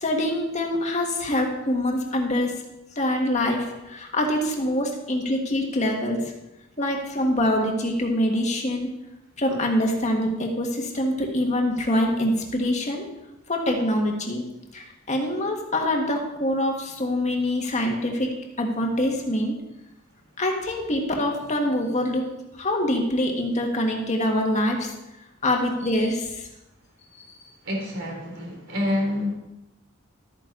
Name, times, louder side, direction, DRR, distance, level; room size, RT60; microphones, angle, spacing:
voice 1, 0.0-2.5 3.0-6.3 6.8-8.9 9.4-13.1 13.5-14.4 14.7-18.3 18.6-19.5 20.4-22.3 22.6-24.9 25.4-26.5 27.2-27.3, left 1 dB, 35° left, 1 dB, 1.9 m, -25 dB
voice 2, 27.6-29.3, left 1 dB, 55° right, 0 dB, 3.4 m, -27 dB
13.0 x 9.3 x 4.0 m, 0.95 s
head